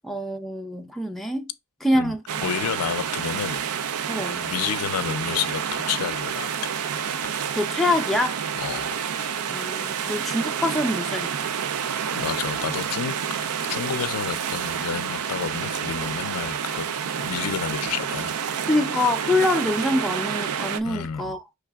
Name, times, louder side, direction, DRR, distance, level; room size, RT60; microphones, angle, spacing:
voice 1, 0.0-1.5 1.8-2.2 4.1-4.4 7.5-8.4 9.5-11.5 18.7-21.4, left 1 dB, ahead, 0.4 m, -25 dB
sound 1, 2.3-20.8, right 7 dB, 80° right, 0.4 m, -29 dB
voice 2, 2.4-3.7 4.3-6.7 8.6-9.0 12.1-16.8 17.2-18.3 20.8-21.3, left 8 dB, 90° left, 0.4 m, -30 dB
5.7 x 3.3 x 2.3 m
head